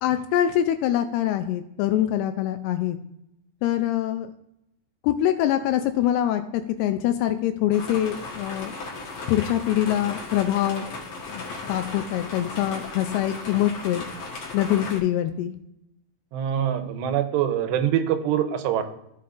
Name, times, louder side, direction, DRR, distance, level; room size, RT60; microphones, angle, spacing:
voice 1, 0.0-3.0 3.6-4.3 5.0-8.7 9.3-10.9 11.3-14.0 14.5-15.5, left 12 dB, 85° left, 8 dB, 2.4 m, -24 dB
sound 1, 7.7-15.0, left 3 dB, 55° left, 2.2 m, -36 dB
voice 2, 16.3-18.8, right 10 dB, 85° right, 8 dB, 2.8 m, -24 dB
15.0 x 5.5 x 2.5 m, 0.80 s
omnidirectional pair, 4.9 m